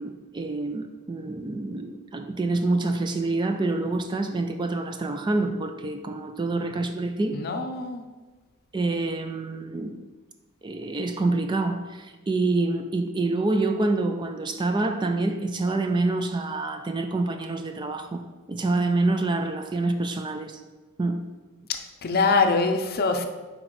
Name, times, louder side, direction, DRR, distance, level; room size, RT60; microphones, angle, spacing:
voice 1, 0.0-7.4 8.7-10.0 10.6-18.2 18.5-20.6 21.0-21.2, right 2 dB, 20° right, 6 dB, 0.3 m, -27 dB
voice 2, 7.3-8.0 22.0-23.2, left 4 dB, 45° left, 6 dB, 0.5 m, -23 dB
7.6 x 5.0 x 3.1 m, 1.2 s
head